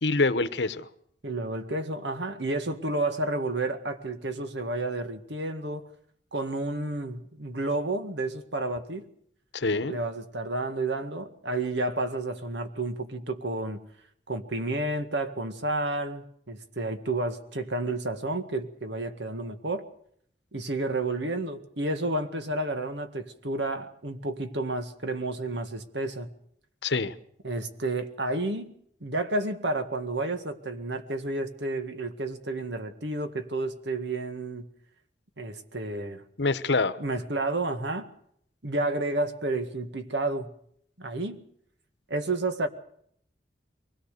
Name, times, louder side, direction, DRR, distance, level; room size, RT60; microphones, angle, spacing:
voice 1, 0.0-0.9 9.5-10.0 26.8-27.1 36.4-37.0, left 3 dB, 85° left, 12 dB, 1.1 m, -25 dB
voice 2, 1.2-5.9 6.3-9.1 9.8-13.8 14.3-19.8 20.5-26.3 27.4-28.7 29.0-34.7 35.4-36.2 37.0-38.1 38.6-40.5 41.0-41.4 42.1-42.7, right 2 dB, 80° right, 8 dB, 1.9 m, -31 dB
23.5 x 17.5 x 6.8 m, 0.67 s
head